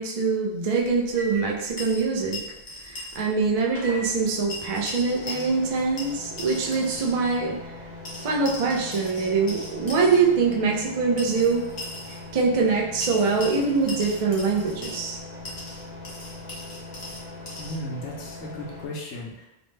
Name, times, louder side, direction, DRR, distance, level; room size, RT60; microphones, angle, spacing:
voice 1, 0.0-2.4 2.8-7.6 8.2-11.6 12.3-15.2, right 4 dB, 60° right, -1 dB, 0.3 m, -24 dB
sound 1, 0.8-18.9, left 2 dB, 40° right, 0.8 m, -41 dB
sound 2, 1.8-3.2 3.5-3.6 4.5-5.7 6.0-7.2 8.0-10.2 11.2-12.2 13.0-15.1 15.4-17.8, left 2 dB, 40° left, 0.8 m, -39 dB
voice 2, 17.6-19.5, equal, 70° left, -2 dB, 0.9 m, -35 dB
2.9 x 2.1 x 3.1 m, 0.95 s
omnidirectional pair, 1.2 m